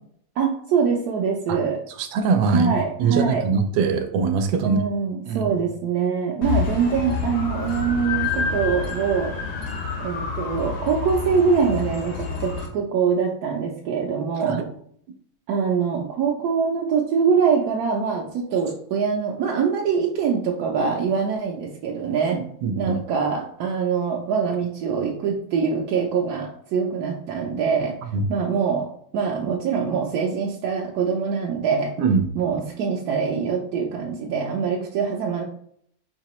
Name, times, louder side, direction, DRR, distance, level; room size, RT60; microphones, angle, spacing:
voice 1, 0.4-1.8 2.5-3.5 4.6-9.3 10.0-14.6 15.5-22.4 22.8-28.0 28.3-28.9 29.1-31.9 32.3-35.4, right 6 dB, 70° right, -1 dB, 1.0 m, -24 dB
voice 2, 2.0-4.8 5.3-5.6 14.4-14.6 22.3-23.0 28.1-28.3 32.0-32.3, right 5 dB, 85° right, 7 dB, 1.3 m, -22 dB
sound 1, 6.4-12.7, left 5 dB, 60° left, 0.7 m, -28 dB
5.1 x 2.8 x 3.0 m, 0.65 s
omnidirectional pair, 2.0 m